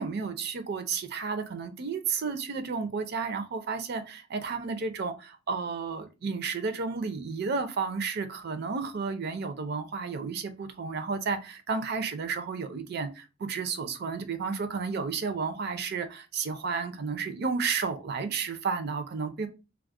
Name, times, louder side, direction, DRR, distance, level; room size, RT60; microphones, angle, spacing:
voice 1, 0.0-19.5, right 5 dB, 55° right, 0.4 m, -32 dB
2.3 x 2.0 x 3.5 m
head